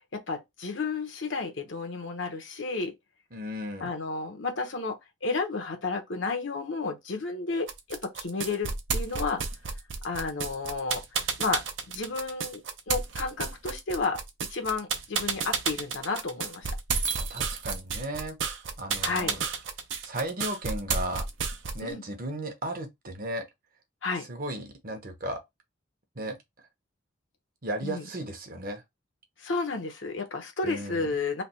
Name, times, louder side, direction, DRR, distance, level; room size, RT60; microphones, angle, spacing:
voice 1, 0.1-2.9 3.8-9.4 10.0-11.0 11.4-12.6 12.9-14.2 14.5-16.7 19.0-19.3 21.8-22.0 24.0-24.3 27.8-28.1 29.4-31.4, left 4 dB, 75° left, 0.9 m, -32 dB
voice 2, 3.3-3.9 17.2-18.4 18.8-19.5 20.0-21.2 21.7-23.4 24.2-25.4 26.2-26.4 27.6-28.8 30.6-31.1, right 1 dB, 45° right, 0.9 m, -35 dB
sound 1, 7.7-21.9, right 5 dB, 70° right, 0.7 m, -31 dB
3.3 x 2.3 x 4.2 m
head